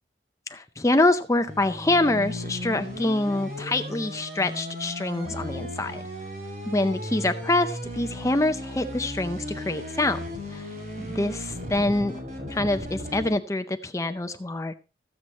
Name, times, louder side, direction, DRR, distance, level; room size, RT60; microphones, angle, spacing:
voice 1, 0.5-6.0 6.7-10.2 10.5-10.7 11.0-12.1 12.5-14.8, left 2 dB, 20° left, 8 dB, 0.6 m, -25 dB
sound 1, 1.5-13.3, left 1 dB, 50° right, 7.0 m, -36 dB
14.5 x 8.0 x 4.2 m, 0.31 s
head